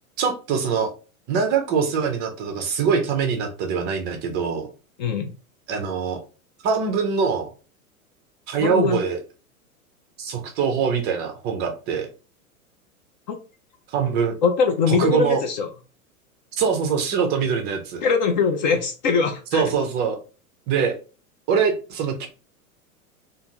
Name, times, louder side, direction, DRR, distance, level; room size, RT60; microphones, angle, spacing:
voice 1, 0.2-0.9 1.3-4.7 5.7-6.2 6.6-7.5 8.5-9.2 10.2-12.1 13.9-14.3 14.9-15.4 16.6-18.0 19.5-20.2 20.7-21.0 21.5-22.3, right 6 dB, 25° right, 4 dB, 0.4 m, -23 dB
voice 2, 8.6-9.0 13.3-13.4 14.4-15.7 18.0-19.6, left 5 dB, 35° left, 4 dB, 0.4 m, -21 dB
2.5 x 2.4 x 2.8 m, 0.35 s
figure-of-eight pair, 95°, 43 cm